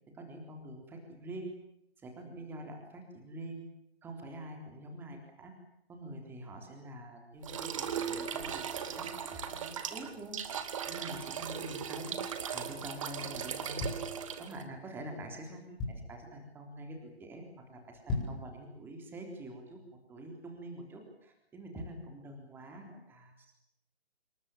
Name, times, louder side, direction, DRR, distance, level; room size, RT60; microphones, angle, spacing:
voice 1, 0.1-1.5 2.0-3.6 4.0-5.5 5.9-10.4 10.9-12.2 12.5-13.8 14.4-23.5, right 1 dB, 5° right, 3 dB, 3.7 m, -46 dB
sound 1, 7.4-14.6, right 8 dB, 30° right, 2.6 m, -38 dB
sound 2, 13.8-14.8 15.3-15.4 15.5-16.3 16.7-17.0 17.3-17.4 17.9-18.5 19.0-19.1, left 2 dB, 10° left, 6.5 m, -37 dB
28.0 x 22.0 x 7.3 m, 0.79 s
figure-of-eight pair, 140°, 32 cm